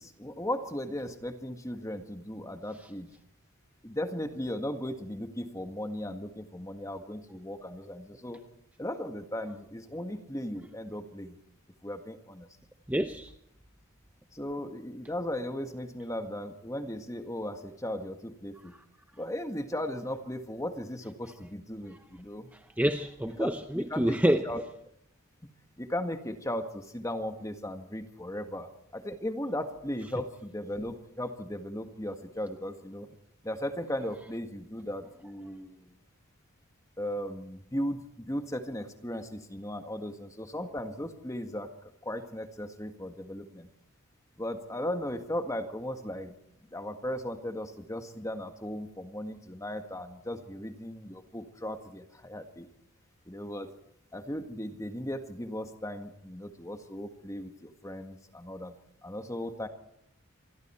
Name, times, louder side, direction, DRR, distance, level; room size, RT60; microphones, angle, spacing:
voice 1, 0.0-3.1 3.8-8.4 8.8-11.4 11.8-12.5 14.3-18.7 19.2-22.5 23.4-24.6 25.8-33.1 33.4-35.9 37.0-43.7 44.4-46.3 46.7-52.7 53.3-53.7 54.1-58.7 59.0-59.7, left 1 dB, 15° left, 1.7 m, -37 dB
voice 2, 12.9-13.3 21.9-22.0 22.5-24.4, equal, 5° right, 0.8 m, -28 dB
27.0 x 21.5 x 4.5 m
head